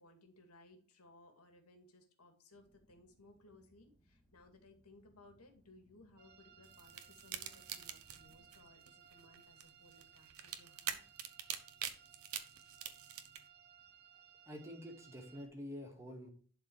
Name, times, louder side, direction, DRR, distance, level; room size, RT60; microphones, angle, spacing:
voice 1, 0.0-11.0, left 2 dB, 85° left, 4 dB, 2.4 m, -62 dB
sound 1, 2.5-8.7, equal, 10° left, 2.4 m, -72 dB
sound 2, 6.2-15.5, right 9 dB, 45° right, 1.7 m, -62 dB
sound 3, 6.6-13.4, right 9 dB, 75° right, 1.0 m, -45 dB
voice 2, 14.5-16.3, left 1 dB, 15° right, 1 dB, 2.2 m, -48 dB
11.5 x 4.4 x 4.8 m, 0.43 s
head